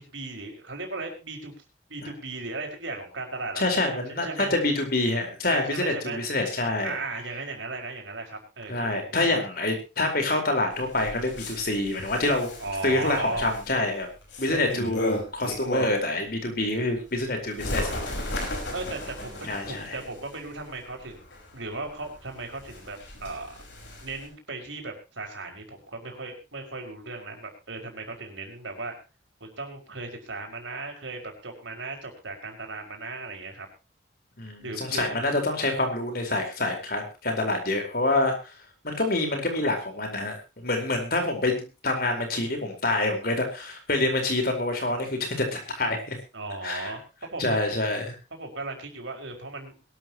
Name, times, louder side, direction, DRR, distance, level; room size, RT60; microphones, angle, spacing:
voice 1, 0.0-1.5 1.9-3.6 3.9-4.5 5.5-6.2 6.8-9.4 12.6-13.6 18.7-21.2 21.5-23.5 24.0-28.9 29.4-33.7 34.6-35.2 46.3-47.8 48.3-49.8, right 3 dB, 90° right, 3 dB, 5.5 m, -36 dB
voice 2, 3.6-7.0 8.7-12.5 12.8-14.1 14.4-18.4 19.4-20.0 34.4-38.5 38.8-46.2 46.6-46.9 47.4-48.1, left 2 dB, 50° left, 4 dB, 4.5 m, -27 dB
Bird, 10.7-16.2 16.6-24.3, left 1 dB, 75° left, 5.3 m, -36 dB
22.0 x 13.0 x 3.0 m, 0.29 s
head